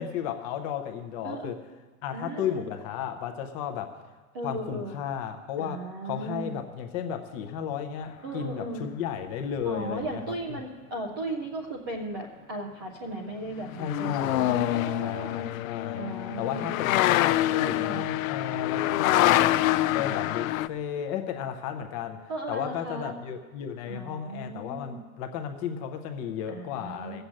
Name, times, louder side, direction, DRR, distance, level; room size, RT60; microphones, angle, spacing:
voice 1, 0.0-1.6 2.0-4.0 4.4-10.2 13.8-16.1 16.4-19.6 19.9-22.2 22.5-27.2, left 8 dB, 25° left, 7 dB, 0.7 m, -34 dB
voice 2, 1.2-1.6 2.1-2.7 4.3-5.0 5.6-6.6 8.2-8.9 9.6-15.5 16.0-16.7 17.4-18.0 19.1-20.0 22.3-23.1 23.9-25.0 26.5-27.2, right 2 dB, 20° right, -2 dB, 0.4 m, -36 dB
sound 1, 9.6-9.7 13.7-20.7, left 15 dB, 70° left, 0.5 m, -25 dB
14.0 x 7.9 x 8.6 m, 1.3 s
supercardioid pair, 170°, 43 cm